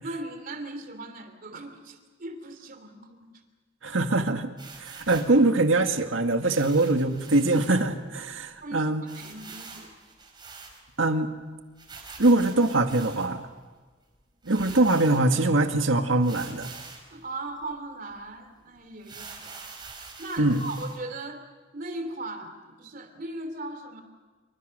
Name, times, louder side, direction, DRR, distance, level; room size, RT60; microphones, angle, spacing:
voice 1, 0.0-3.3 8.6-10.0 17.1-19.6 20.0-21.5 21.7-24.0, right 2 dB, 45° right, 8 dB, 3.3 m, -38 dB
voice 2, 3.8-4.5 4.8-9.0 11.0-11.3 12.2-13.4 14.5-16.7 20.4-20.6, right 2 dB, 85° right, 6 dB, 1.9 m, -23 dB
sound 1, 4.6-5.4 6.4-7.8 8.2-8.3 8.5-8.6 9.1-11.1 11.8-13.5 14.1-14.2 14.4-15.5 16.2-17.1 17.6-17.7 18.1-18.2 19.0-21.0, right 4 dB, 25° right, 5.2 m, -45 dB
27.0 x 25.5 x 6.7 m, 1.4 s
head